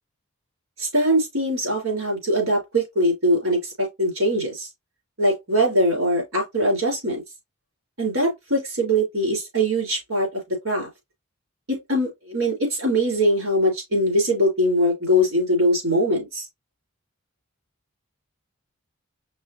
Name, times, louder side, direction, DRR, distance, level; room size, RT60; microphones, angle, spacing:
voice 1, 0.8-4.7 5.2-7.2 8.0-10.9 11.7-16.4, equal, 80° right, 3.5 m, -22 dB
5.4 x 3.4 x 2.7 m
head